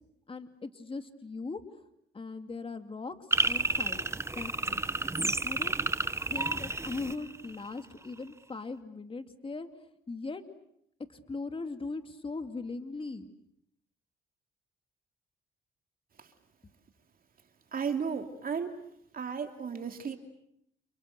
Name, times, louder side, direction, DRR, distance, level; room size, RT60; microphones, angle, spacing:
voice 1, 0.3-1.6 2.1-3.2 3.4-4.8 5.4-5.8 6.1-9.7 10.1-10.4 11.1-13.3, left 3 dB, 25° left, 8 dB, 2.4 m, -39 dB
sound 1, 3.3-7.8, right 2 dB, 15° right, 1.0 m, -30 dB
voice 2, 17.7-18.7 19.1-20.2, right 6 dB, 45° right, 5 dB, 2.8 m, -34 dB
29.5 x 29.5 x 6.7 m, 0.75 s
cardioid pair, 90°, 20 cm